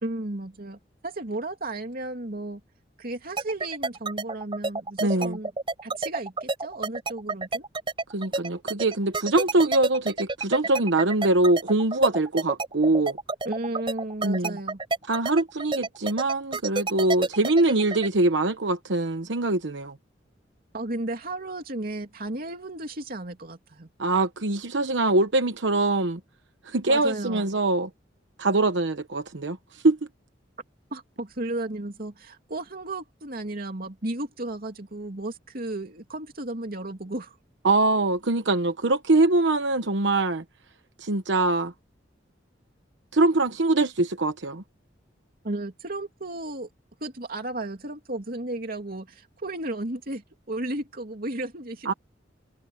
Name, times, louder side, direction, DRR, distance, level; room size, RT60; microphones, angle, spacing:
voice 1, 0.0-2.6 3.0-5.5 5.8-7.6 13.4-14.8 20.7-23.9 26.9-27.5 30.9-37.4 45.4-46.7 47.0-50.2 50.5-51.9, right 2 dB, 55° right, 2.9 m, -34 dB
sound 1, 3.4-18.1, right 3 dB, 30° right, 4.8 m, -29 dB
voice 2, 5.0-5.4 8.1-13.2 14.2-14.6 15.1-19.9 24.0-26.2 26.7-27.9 28.4-29.6 29.8-30.0 37.6-40.4 41.0-41.7 43.1-44.6 51.8-51.9, right 2 dB, 85° right, 1.1 m, -23 dB
head